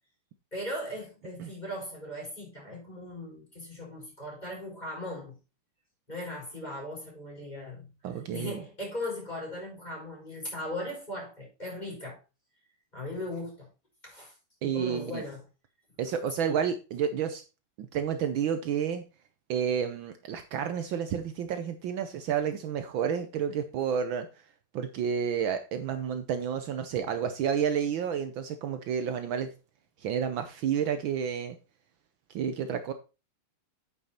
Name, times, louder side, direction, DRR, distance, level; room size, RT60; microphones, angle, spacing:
voice 1, 0.5-5.4 6.1-7.9 8.3-12.2 12.9-13.7 14.0-14.3 14.6-15.5 16.4-16.6, left 1 dB, 20° left, 5.0 m, -38 dB
voice 2, 8.0-8.6 14.6-15.2 16.0-17.4 17.8-19.0 19.5-24.3 24.7-29.5 30.0-31.5 32.3-32.9, right 8 dB, 70° right, 1.5 m, -30 dB
9.0 x 6.6 x 4.3 m
omnidirectional pair, 2.4 m